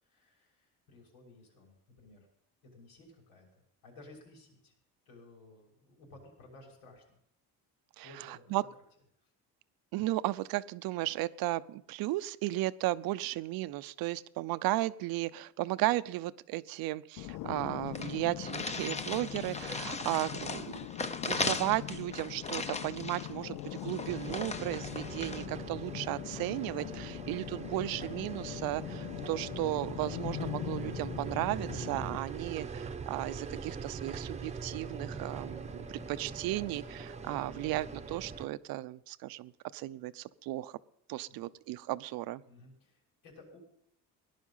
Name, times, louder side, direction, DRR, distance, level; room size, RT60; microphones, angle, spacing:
voice 1, 0.0-2.3 2.6-4.7 5.0-7.2 8.0-8.6 9.2-9.3 41.3-41.5 42.5-43.6, left 2 dB, 90° left, -1 dB, 6.3 m, -56 dB
voice 2, 8.0-8.6 9.9-20.6 21.3-40.8 41.1-42.4, right 17 dB, 75° right, 15 dB, 0.7 m, -35 dB
sound 1, 17.2-32.2, left 15 dB, 60° left, 0.5 m, -42 dB
sound 2, 17.2-17.3 17.6-17.7 17.9-25.5, left 3 dB, 20° left, 0.8 m, -38 dB
sound 3, 24.1-38.4, right 4 dB, 20° right, 0.9 m, -42 dB
18.0 x 11.0 x 5.6 m, 0.72 s
cardioid pair, 135°, 35 cm